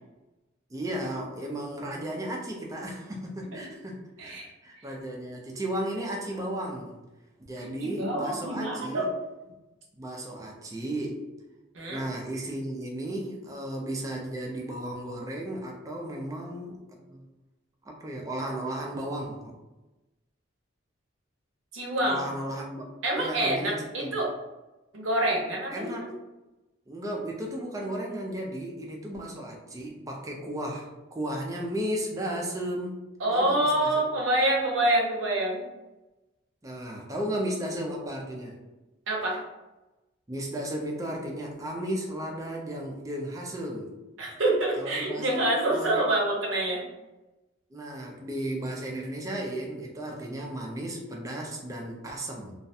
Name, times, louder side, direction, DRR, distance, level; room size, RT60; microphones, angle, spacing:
voice 1, 0.7-7.0 7.5-9.1 10.0-11.2 11.9-16.8 17.1-17.3 17.8-19.5 22.0-22.9 23.1-24.2 25.7-26.0 26.9-33.0 33.3-34.0 36.6-38.6 40.3-43.9 44.8-45.4 45.7-46.1 47.7-52.6, right 1 dB, 15° right, -1 dB, 0.4 m, -34 dB
voice 2, 7.6-9.2 11.7-12.0 21.7-22.2 23.0-24.4 24.9-26.1 33.2-35.6 39.1-39.4 44.2-46.8, right 1 dB, 75° right, -1 dB, 0.6 m, -27 dB
2.4 x 2.1 x 2.7 m, 1.0 s
head